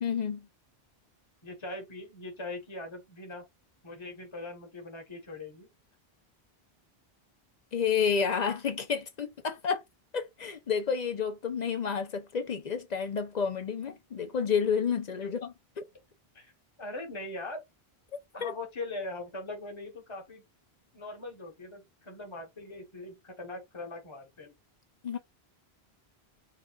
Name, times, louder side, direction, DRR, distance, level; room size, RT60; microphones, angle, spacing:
voice 1, 0.0-0.5 7.7-9.8 10.1-15.5 18.4-18.5 25.0-25.2, left 6 dB, 50° left, 0.6 m, -30 dB
voice 2, 1.4-3.4 3.8-5.7 15.2-15.3 16.3-16.5 16.8-17.6 18.3-20.4 20.9-24.5, left 2 dB, 30° left, 1.1 m, -41 dB
4.8 x 2.5 x 2.3 m
omnidirectional pair, 1.1 m